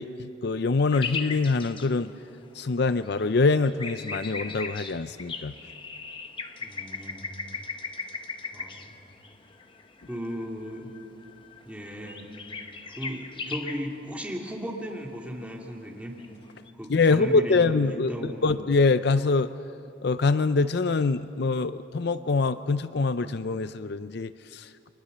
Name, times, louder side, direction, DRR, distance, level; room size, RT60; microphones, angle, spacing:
voice 1, 0.0-2.1 2.5-5.5 16.9-19.5 20.0-24.9, left 3 dB, 55° left, 12 dB, 0.5 m, -24 dB
sound 1, 0.9-16.7, left 4 dB, 25° left, 1.1 m, -39 dB
voice 2, 6.6-7.3 8.5-9.0 10.1-10.9 11.6-12.3 13.0-16.1 16.8-18.5, equal, 5° right, -1 dB, 2.8 m, -36 dB
30.0 x 24.0 x 6.8 m, 2.6 s
head